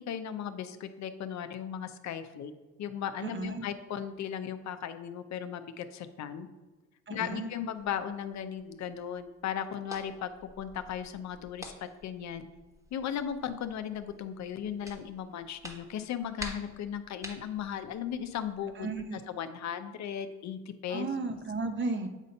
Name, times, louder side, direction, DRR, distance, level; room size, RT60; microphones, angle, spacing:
voice 1, 0.0-2.5 2.8-6.5 7.1-12.5 12.9-21.1, left 9 dB, 65° left, 9 dB, 0.6 m, -37 dB
voice 2, 3.2-3.6 7.1-7.5 18.8-19.2 20.9-22.1, right 3 dB, 40° right, 7 dB, 0.8 m, -34 dB
sound 1, 7.8-19.0, equal, 10° right, 1.2 m, -50 dB
8.1 x 2.7 x 5.2 m, 1.2 s
cardioid pair, 90°, 30 cm